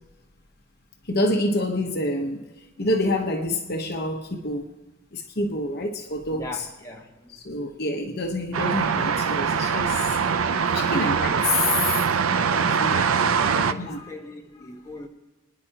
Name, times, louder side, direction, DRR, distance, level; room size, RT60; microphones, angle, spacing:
voice 1, 1.0-2.4 2.8-4.7 5.1-6.7 7.3-10.2 10.7-12.0 12.5-13.0 13.7-14.0, left 2 dB, 50° left, 1.0 m, -27 dB
voice 2, 6.3-7.4 12.9-15.1, left 2 dB, 15° left, 1.3 m, -40 dB
sound 1, 8.5-13.7, right 6 dB, 85° right, 0.6 m, -23 dB
24.5 x 10.0 x 2.9 m
head